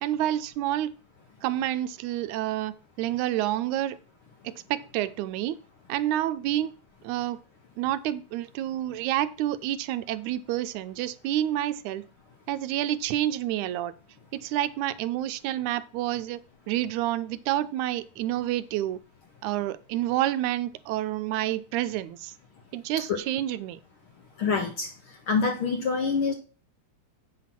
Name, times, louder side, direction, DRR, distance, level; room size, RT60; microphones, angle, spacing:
voice 1, 0.0-0.9 1.4-4.0 4.4-5.6 5.9-6.7 7.0-7.4 7.8-12.1 12.5-13.9 14.3-16.4 16.7-19.0 19.4-22.3 22.7-23.8, right 13 dB, 80° right, 13 dB, 1.9 m, -29 dB
voice 2, 24.4-24.9 25.3-26.3, left 5 dB, 65° left, 4 dB, 1.3 m, -25 dB
8.0 x 5.8 x 5.8 m, 0.36 s
omnidirectional pair, 3.5 m